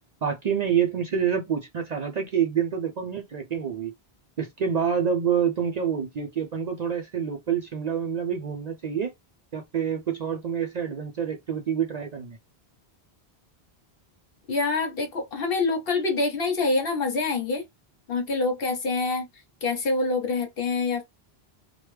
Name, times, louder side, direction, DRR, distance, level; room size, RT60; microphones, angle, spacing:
voice 1, 0.2-3.9 4.4-9.1 9.5-12.4, right 8 dB, 55° right, 0.5 m, -27 dB
voice 2, 14.5-17.6 18.1-19.2 19.6-21.0, left 3 dB, 65° left, 1.1 m, -26 dB
3.2 x 2.2 x 3.1 m
omnidirectional pair, 1.1 m